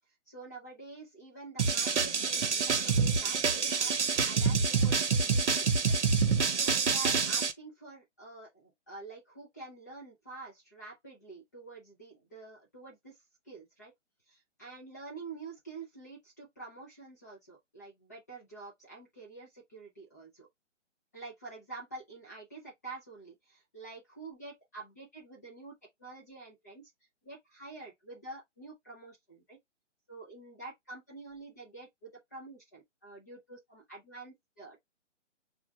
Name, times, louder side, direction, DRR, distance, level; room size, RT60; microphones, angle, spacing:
voice 1, 0.3-6.0 6.5-13.2 13.4-13.9 14.6-20.5 21.1-26.9 27.2-29.6 30.1-34.8, right 3 dB, 15° left, 0.5 m, -47 dB
sound 1, 1.6-7.5, right 5 dB, 65° right, 0.8 m, -27 dB
5.8 x 2.4 x 2.2 m
figure-of-eight pair, 140°, 37 cm